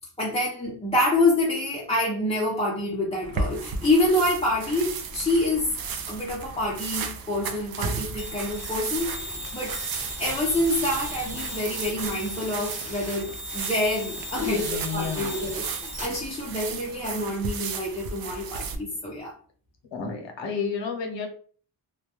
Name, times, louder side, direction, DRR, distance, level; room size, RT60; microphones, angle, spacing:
voice 1, 0.2-5.7 6.1-9.8 10.2-19.3, left 1 dB, 15° left, -5 dB, 0.5 m, -27 dB
sound 1, 3.2-18.8, right 5 dB, 55° right, 0.5 m, -35 dB
sound 2, 8.2-16.1, equal, 15° right, 1.1 m, -37 dB
voice 2, 14.4-15.4 19.9-21.3, left 5 dB, 80° left, 4 dB, 0.8 m, -31 dB
2.2 x 2.1 x 2.8 m, 0.43 s
cardioid pair, 100°, 43 cm